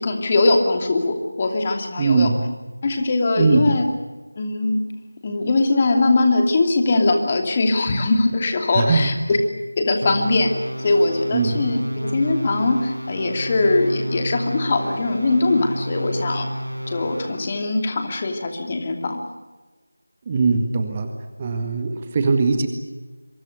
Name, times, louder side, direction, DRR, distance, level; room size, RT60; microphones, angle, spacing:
voice 1, 0.0-2.3 2.8-3.9 4.4-4.8 5.2-9.4 9.8-10.5 10.8-16.5 16.9-19.2, left 2 dB, 25° left, 4 dB, 2.7 m, -21 dB
voice 2, 2.0-2.5 3.4-3.7 8.7-9.1 11.3-11.7 20.3-21.1 21.4-22.7, right 4 dB, 20° right, 6 dB, 1.7 m, -20 dB
sound 1, 10.0-17.6, equal, 85° right, 4.4 m, -30 dB
27.0 x 24.0 x 6.7 m, 1.2 s
figure-of-eight pair, 165°, 0 cm